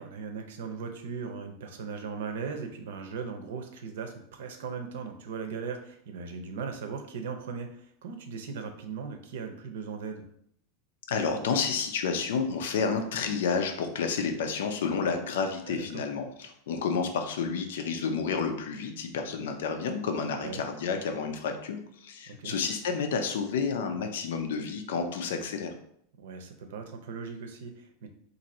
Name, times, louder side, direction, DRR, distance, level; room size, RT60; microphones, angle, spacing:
voice 1, 0.0-10.3 15.6-16.0 20.4-20.6 22.3-22.6 26.2-28.1, right 5 dB, 75° right, 6 dB, 0.6 m, -38 dB
voice 2, 11.1-25.7, left 5 dB, 85° left, 5 dB, 0.5 m, -30 dB
2.7 x 2.6 x 4.2 m, 0.68 s
supercardioid pair, 165°, 0 cm